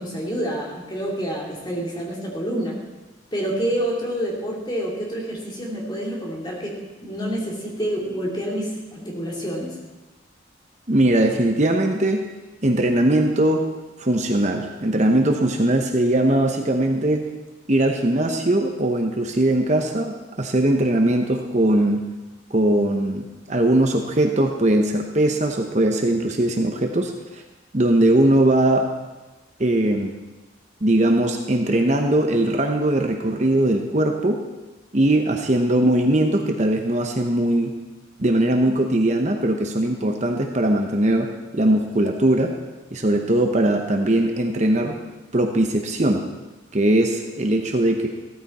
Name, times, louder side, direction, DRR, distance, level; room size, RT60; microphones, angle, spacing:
voice 1, 0.0-2.7 3.3-6.7 7.0-9.8, equal, 20° left, -3 dB, 2.8 m, -28 dB
voice 2, 10.9-12.2 12.6-13.6 14.0-17.2 17.7-22.1 22.5-27.4 27.7-28.9 29.6-30.1 30.8-34.4 34.9-37.7 38.2-42.6 42.9-45.0 45.3-46.2 46.7-48.1, right 1 dB, 35° right, 3 dB, 1.0 m, -20 dB
15.5 x 13.5 x 4.3 m, 1.2 s
head